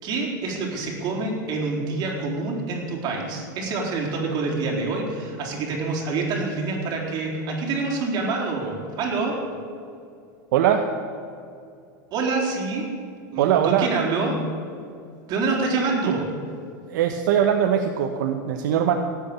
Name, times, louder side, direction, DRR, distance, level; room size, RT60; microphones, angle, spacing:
voice 1, 0.0-9.4 12.1-12.9 13.3-14.3 15.3-16.3, right 3 dB, 40° right, -1 dB, 4.3 m, -26 dB
voice 2, 10.5-10.8 13.4-13.9 16.9-18.9, right 9 dB, 70° right, 5 dB, 1.0 m, -21 dB
18.5 x 8.6 x 7.0 m, 2.5 s
supercardioid pair, 120°, 10 cm